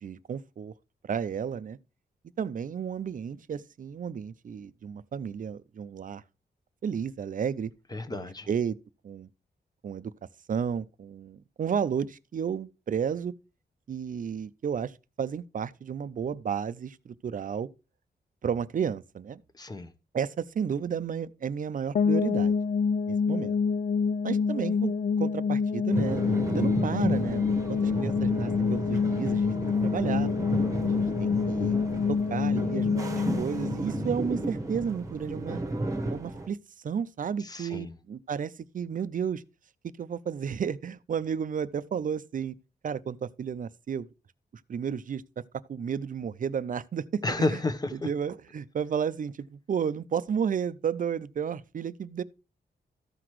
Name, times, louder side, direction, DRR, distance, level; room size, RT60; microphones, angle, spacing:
voice 1, 0.0-0.7 1.0-1.8 2.4-6.2 6.8-7.7 8.5-8.8 9.0-9.3 9.8-10.1 10.5-13.3 13.9-17.7 18.4-19.4 20.1-22.5 23.1-23.6 24.2-29.5 29.8-30.3 31.0-31.8 32.1-35.6 36.1-36.6 36.8-39.4 40.0-42.6 42.8-44.1 44.7-45.2 45.7-47.2 47.5-47.6 47.9-52.2, right 7 dB, 50° right, 0.5 m, -32 dB
voice 2, 7.9-8.5 19.5-19.9 37.4-37.9 47.2-48.1, left 2 dB, 25° left, 0.9 m, -31 dB
sound 1, 21.9-34.8, left 5 dB, 50° left, 0.4 m, -27 dB
sound 2, 25.9-36.5, right 2 dB, 20° right, 1.1 m, -33 dB
14.0 x 5.9 x 3.1 m
wide cardioid pair, 150°, 17 cm